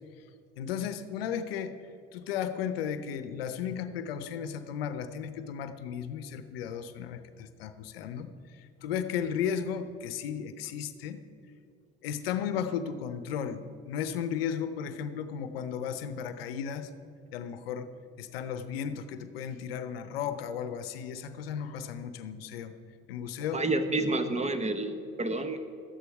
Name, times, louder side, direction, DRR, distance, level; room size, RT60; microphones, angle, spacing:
voice 1, 0.6-1.7 2.1-8.3 8.8-11.2 12.0-16.9 17.3-17.9 18.2-22.7 23.1-23.6, left 8 dB, 85° left, 11 dB, 0.7 m, -34 dB
voice 2, 23.5-25.6, right 2 dB, 25° right, 9 dB, 1.1 m, -29 dB
13.0 x 9.7 x 4.6 m, 2.7 s
hypercardioid pair, 65°, 29 cm